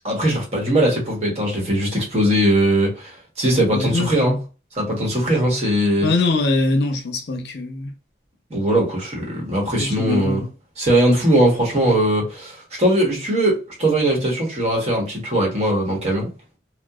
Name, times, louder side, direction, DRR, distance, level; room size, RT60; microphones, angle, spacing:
voice 1, 0.0-4.4 4.7-6.1 8.5-10.4 10.8-16.3, right 1 dB, 35° right, 1.0 m, -20 dB
voice 2, 3.7-4.4 6.0-7.9 9.8-10.5, left 2 dB, 65° left, 0.6 m, -22 dB
2.8 x 2.1 x 2.3 m
head